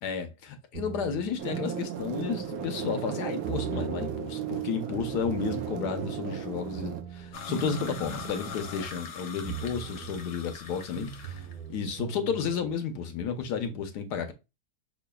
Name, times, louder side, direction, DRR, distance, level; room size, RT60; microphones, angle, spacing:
voice 1, 0.0-14.3, left 6 dB, 75° left, 1.2 m, -32 dB
sound 1, 0.7-3.0 3.4-4.3 4.9-9.1 9.4-10.3 10.9-12.7, right 9 dB, 90° right, 2.8 m, -41 dB
sound 2, 1.4-7.0, right 8 dB, 65° right, 1.0 m, -35 dB
sound 3, 7.3-11.5, left 6 dB, 55° left, 1.0 m, -42 dB
5.7 x 2.3 x 2.2 m
omnidirectional pair, 1.8 m